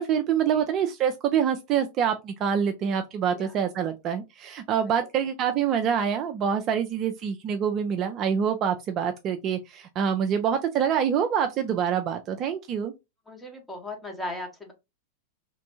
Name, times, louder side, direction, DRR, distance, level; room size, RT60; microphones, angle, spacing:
voice 1, 0.0-12.9, right 8 dB, 35° right, 0.4 m, -26 dB
voice 2, 13.3-14.7, left 1 dB, 10° left, 0.9 m, -37 dB
3.1 x 2.6 x 2.7 m
figure-of-eight pair, 90°, 0 cm